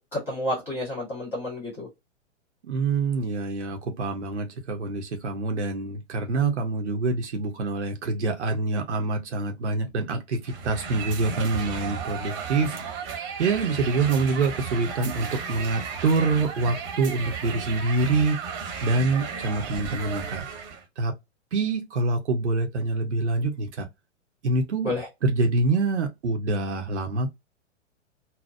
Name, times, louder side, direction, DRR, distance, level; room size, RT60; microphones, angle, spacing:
voice 1, 0.1-1.9 24.8-25.1, left 1 dB, 15° left, 1.7 m, -30 dB
voice 2, 2.7-13.1 13.4-18.6 18.8-20.5 21.0-21.1 21.5-23.9 24.4-24.9 25.2-27.3, right 3 dB, 70° right, 0.6 m, -26 dB
sound 1, 10.4-20.8, right 6 dB, 25° right, 0.9 m, -34 dB
4.1 x 2.0 x 2.2 m
figure-of-eight pair, 110°, 37 cm